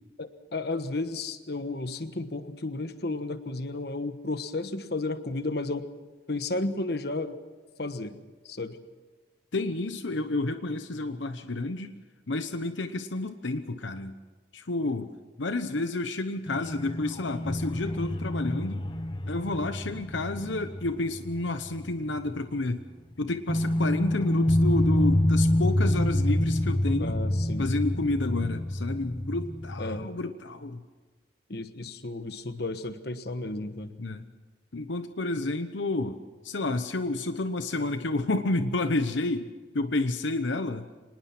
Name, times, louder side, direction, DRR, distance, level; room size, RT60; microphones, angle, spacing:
voice 1, 0.2-5.8 6.3-7.4 7.8-8.1 8.4-8.8 27.0-27.7 29.8-30.1 31.5-33.9, left 2 dB, 55° left, 10 dB, 1.3 m, -33 dB
voice 2, 9.5-11.9 12.3-14.1 14.5-15.1 15.4-18.8 19.3-22.8 23.2-27.2 27.6-30.8 34.0-34.3 34.7-39.5 39.7-40.9, left 2 dB, 80° left, 9 dB, 1.0 m, -30 dB
sound 1, 16.5-21.9 22.2-22.3 23.5-30.1, left 1 dB, 25° left, 0.9 m, -27 dB
25.5 x 20.0 x 6.1 m, 1.3 s
head